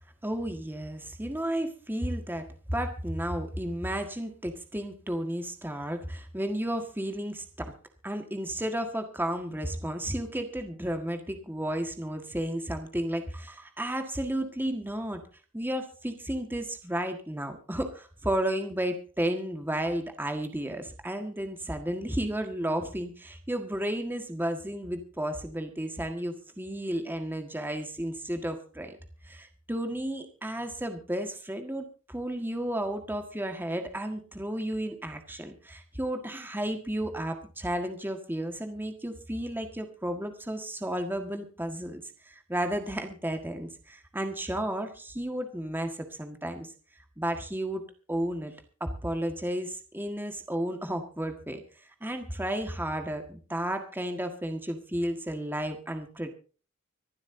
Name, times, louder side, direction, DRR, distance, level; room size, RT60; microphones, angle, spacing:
voice 1, 0.2-7.7 8.0-15.2 15.5-29.0 29.2-46.7 47.2-47.8 48.1-48.5 48.8-56.3, right 1 dB, 10° right, 5 dB, 1.6 m, -33 dB
25.5 x 12.0 x 2.7 m, 0.38 s
head